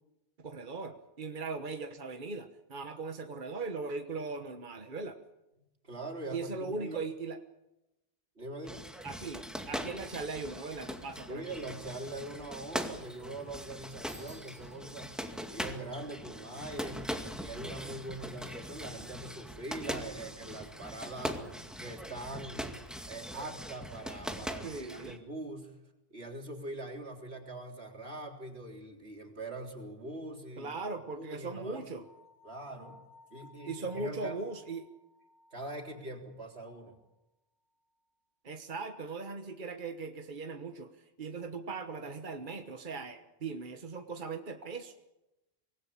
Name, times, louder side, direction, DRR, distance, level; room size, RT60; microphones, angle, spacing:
voice 1, 0.4-5.2 6.3-7.4 9.0-11.5 24.6-25.2 30.6-32.0 33.6-34.9 38.4-40.9 41.2-44.9, right 4 dB, 50° right, 6 dB, 1.5 m, -39 dB
voice 2, 5.8-7.0 8.4-8.8 11.3-15.2 15.5-17.1 17.3-21.4 21.8-22.7 23.1-25.7 26.1-30.7 31.1-31.9 32.4-33.0 33.3-34.4 35.5-37.0, right 2 dB, 85° right, 2 dB, 3.9 m, -42 dB
sound 1, 8.6-25.2, equal, ahead, 2.1 m, -41 dB
Bicycle bell, 14.1-15.0, right 1 dB, 35° right, 2.2 m, -56 dB
sound 2, 32.0-37.1, left 3 dB, 50° left, 1.7 m, -59 dB
25.0 x 19.0 x 8.6 m, 0.95 s
omnidirectional pair, 1.0 m